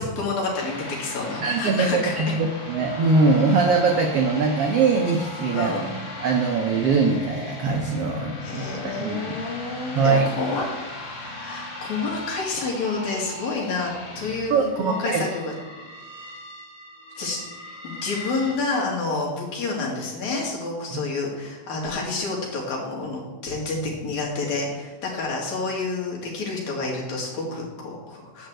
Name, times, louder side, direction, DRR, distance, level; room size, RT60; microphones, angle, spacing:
voice 1, 0.0-2.3 5.5-5.9 8.4-10.7 11.2-15.5 17.2-28.5, left 3 dB, 60° left, -2 dB, 3.3 m, -29 dB
sound 1, 0.5-18.5, left 2 dB, 40° left, 2.0 m, -37 dB
voice 2, 1.4-5.7 6.2-8.6 9.0-9.2 9.9-10.2 14.5-15.2 20.9-21.0, right 4 dB, 85° right, 2 dB, 1.3 m, -22 dB
10.5 x 4.5 x 7.7 m, 1.3 s
omnidirectional pair, 3.9 m